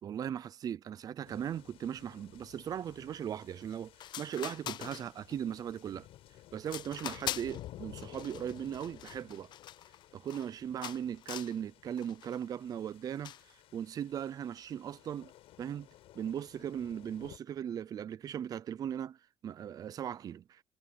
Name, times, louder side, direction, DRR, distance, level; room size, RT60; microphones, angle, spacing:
voice 1, 0.0-6.1 6.5-9.5 10.1-13.3 13.7-15.3 15.6-15.9 16.1-19.2 19.4-20.6, right 9 dB, 40° right, 0.5 m, -38 dB
sound 1, 1.2-17.4, left 14 dB, 75° left, 6.7 m, -55 dB
sound 2, 3.7-3.8 4.0-5.4 5.8-6.2 6.6-7.7 8.0-10.5 10.8-11.6 12.0-12.4 13.2-13.5, left 11 dB, 50° left, 0.5 m, -43 dB
cardioid pair, 140°, 10 cm